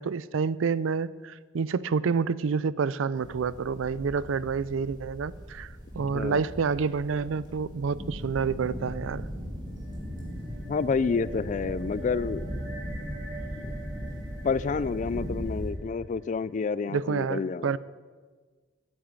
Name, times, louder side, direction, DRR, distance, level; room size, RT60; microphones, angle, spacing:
voice 1, 0.0-9.3 16.9-17.8, right 5 dB, 85° right, 19 dB, 0.4 m, -28 dB
sound 1, 3.1-15.7, equal, 25° right, 2.6 m, -38 dB
voice 2, 6.1-6.4 10.7-12.4 14.4-17.8, left 5 dB, 40° left, 19 dB, 0.3 m, -29 dB
sound 2, 9.6-16.3, right 2 dB, 45° right, 3.8 m, -44 dB
8.9 x 8.9 x 8.7 m, 1.5 s
head